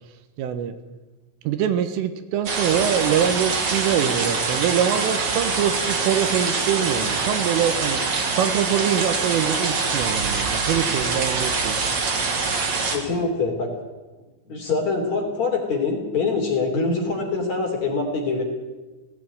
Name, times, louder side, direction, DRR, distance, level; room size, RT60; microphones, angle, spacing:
voice 1, 0.4-0.8 1.5-8.0 8.3-11.8, right 9 dB, 80° right, 9 dB, 3.7 m, -24 dB
sound 1, 2.5-13.0, right 4 dB, 40° right, 3.2 m, -24 dB
voice 2, 12.9-13.7 14.5-18.4, left 4 dB, 40° left, 2 dB, 3.6 m, -24 dB
17.5 x 17.5 x 9.2 m, 1.2 s
omnidirectional pair, 5.9 m